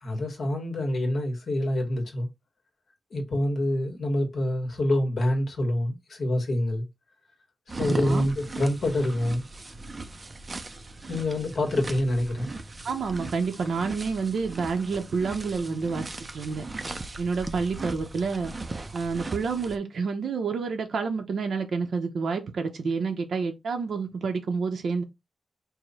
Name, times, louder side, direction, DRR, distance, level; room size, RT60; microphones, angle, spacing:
voice 1, 0.0-2.3 3.1-6.8 7.8-9.4 11.1-12.5, left 1 dB, 60° left, 1.3 m, -26 dB
sound 1, 7.7-19.8, right 3 dB, 25° right, 0.4 m, -38 dB
voice 2, 7.9-8.3 12.8-16.1 16.3-16.6 17.2-18.5 18.9-25.0, right 5 dB, 80° right, 0.6 m, -29 dB
4.8 x 2.1 x 4.0 m
wide cardioid pair, 170°, 0 cm